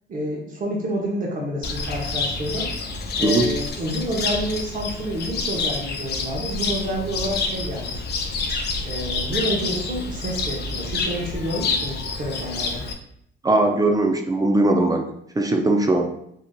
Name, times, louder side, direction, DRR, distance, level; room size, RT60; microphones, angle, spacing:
voice 1, 0.1-2.7 3.2-8.0 8.8-12.8, equal, 45° right, -2 dB, 0.8 m, -29 dB
Cricket, 1.6-12.9, left 4 dB, 55° left, 0.5 m, -28 dB
voice 2, 13.4-15.1 15.4-16.1, right 2 dB, 20° right, 3 dB, 0.4 m, -19 dB
3.5 x 2.7 x 2.2 m, 0.74 s
cardioid pair, 90°, 20 cm